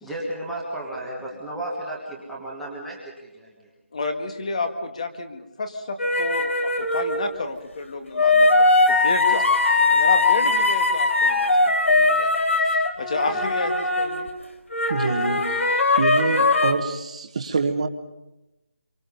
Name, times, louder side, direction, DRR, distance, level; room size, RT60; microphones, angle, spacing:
voice 1, 0.0-3.7 13.3-13.5, right 1 dB, ahead, -4 dB, 1.5 m, -34 dB
voice 2, 3.9-9.5 9.9-12.3 12.6-14.3, left 3 dB, 30° left, 6 dB, 1.8 m, -31 dB
sound 1, 6.0-7.2 8.2-14.3 14.7-16.7, left 3 dB, 70° left, 3.9 m, -20 dB
voice 3, 14.9-15.6 16.0-17.9, right 4 dB, 30° right, 7 dB, 1.4 m, -26 dB
27.0 x 24.0 x 5.3 m, 0.96 s
figure-of-eight pair, 175°, 7 cm